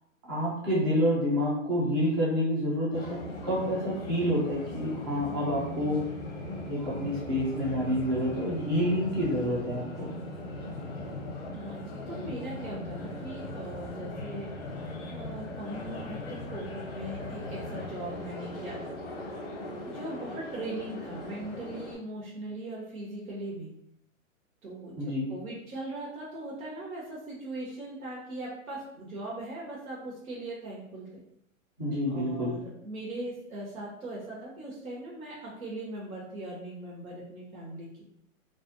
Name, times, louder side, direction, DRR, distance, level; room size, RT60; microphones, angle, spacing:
voice 1, 0.3-6.0 6.7-10.1 25.0-25.3 31.8-32.6, equal, 20° right, -6 dB, 0.4 m, -28 dB
sound 1, 2.9-21.9, left 2 dB, 30° left, 0.6 m, -39 dB
voice 2, 11.5-19.0 19.8-23.7 24.6-25.0 25.3-31.2 32.1-37.9, right 1 dB, 85° right, -5 dB, 1.0 m, -40 dB
2.4 x 2.0 x 2.5 m, 0.73 s
hypercardioid pair, 150°, 41 cm